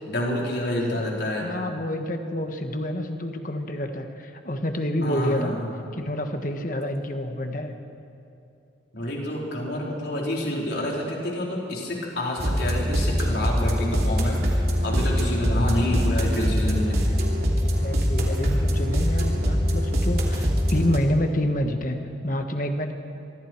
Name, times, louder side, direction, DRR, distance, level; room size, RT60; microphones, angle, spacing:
voice 1, 0.1-1.5 5.0-5.7 8.9-14.4 14.8-17.0, left 1 dB, 65° left, -3 dB, 4.6 m, -28 dB
voice 2, 1.4-5.6 5.9-7.8 17.6-22.9, left 1 dB, 45° left, 5 dB, 1.6 m, -28 dB
sound 1, 12.4-21.0, equal, 55° right, 3.0 m, -23 dB
25.5 x 23.0 x 4.7 m, 2.8 s
head